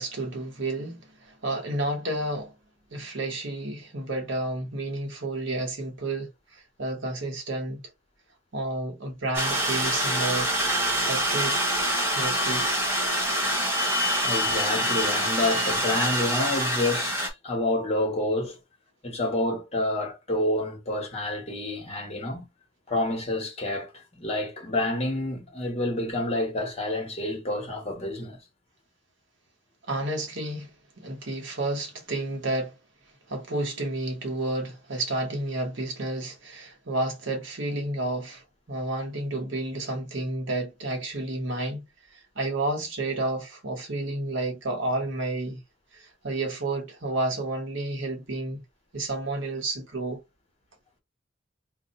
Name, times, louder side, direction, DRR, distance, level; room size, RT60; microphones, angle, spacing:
voice 1, 0.0-2.5 2.9-7.8 8.5-10.5 11.1-11.6 12.1-12.7 29.9-30.7 31.0-32.8 33.3-38.4 38.7-45.6 45.9-48.6 48.9-50.2, right 2 dB, 70° right, 1.1 m, -31 dB
sound 1, 9.3-17.3, equal, 10° right, 0.9 m, -25 dB
voice 2, 14.2-18.6 19.0-22.5 22.9-28.4, left 1 dB, 30° left, 1.2 m, -28 dB
2.6 x 2.4 x 4.1 m
head